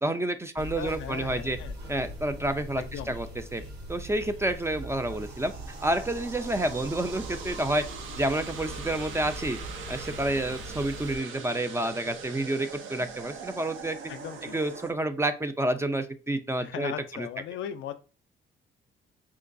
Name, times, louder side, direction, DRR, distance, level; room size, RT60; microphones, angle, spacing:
voice 1, 0.0-1.6 1.9-3.6 3.9-5.5 5.8-7.8 8.2-9.6 9.9-14.0 14.5-17.3, right 1 dB, 15° right, 9 dB, 0.3 m, -29 dB
sound 1, 0.6-11.2, equal, 55° right, 1.0 m, -41 dB
voice 2, 0.8-1.7 2.8-3.1 14.1-14.6 16.6-17.9, left 10 dB, 70° left, 10 dB, 0.4 m, -38 dB
sound 2, 4.9-14.9, right 6 dB, 80° right, 0.6 m, -42 dB
4.6 x 2.2 x 2.5 m, 0.34 s
cardioid pair, 90°, 20 cm